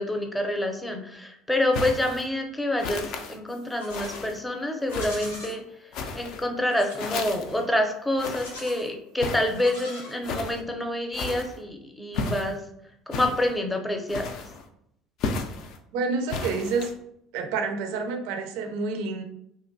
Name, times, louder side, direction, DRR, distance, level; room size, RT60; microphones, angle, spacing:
voice 1, 0.0-5.6 6.2-12.6 13.1-14.3, left 1 dB, 10° left, 3 dB, 0.6 m, -27 dB
sound 1, 1.7-2.3 2.8-3.4 3.9-4.4 4.9-5.4 5.9-6.5 7.0-7.7 8.2-8.6 9.2-9.7 10.2-10.6 11.1-11.6 12.1-12.6 13.1-13.5 14.1-14.6 15.2-15.8 16.3-16.9, left 4 dB, 60° left, 0.3 m, -33 dB
Livestock farm animals working animals, 3.5-4.3 4.8-5.6 6.7-7.2 8.3-8.9 9.5-10.5, left 2 dB, 90° left, 0.7 m, -42 dB
voice 2, 15.9-16.9 17.3-19.2, right 4 dB, 70° right, 5 dB, 0.4 m, -28 dB
2.8 x 2.2 x 2.6 m, 0.74 s
hypercardioid pair, 65°, 0 cm